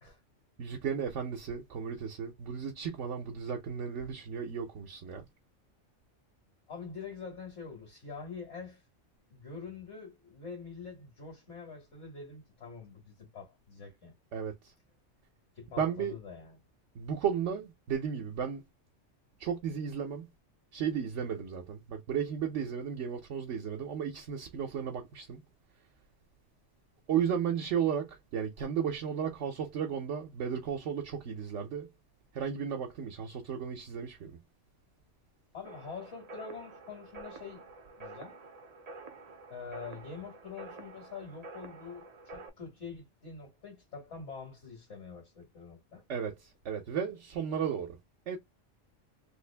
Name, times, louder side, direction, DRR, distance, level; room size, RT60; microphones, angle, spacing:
voice 1, 0.6-5.2 14.3-14.7 15.8-16.2 16.9-18.6 19.4-20.3 20.7-25.4 27.1-31.9 32.3-34.4 46.1-48.0 48.3-48.4, right 7 dB, 75° right, 1.1 m, -34 dB
voice 2, 6.7-8.8 9.3-14.1 15.6-16.6 35.5-37.7 38.0-38.4 39.5-46.0, left 5 dB, 70° left, 1.7 m, -45 dB
sound 1, 35.6-42.5, right 3 dB, 45° right, 0.6 m, -49 dB
3.3 x 2.5 x 3.2 m
omnidirectional pair, 1.2 m